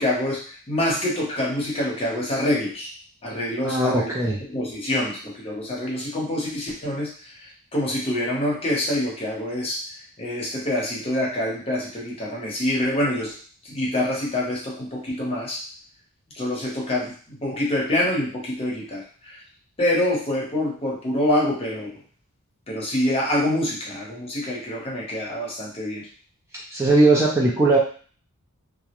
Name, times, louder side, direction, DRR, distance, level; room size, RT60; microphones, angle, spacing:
voice 1, 0.0-2.9 3.2-4.1 4.5-9.8 10.2-13.3 13.6-15.6 16.3-19.4 19.8-21.9 22.7-26.1, left 1 dB, 25° left, -3 dB, 0.8 m, -26 dB
voice 2, 3.6-4.4 26.7-27.8, right 2 dB, 15° right, -4 dB, 0.3 m, -19 dB
2.3 x 2.0 x 2.9 m, 0.42 s
head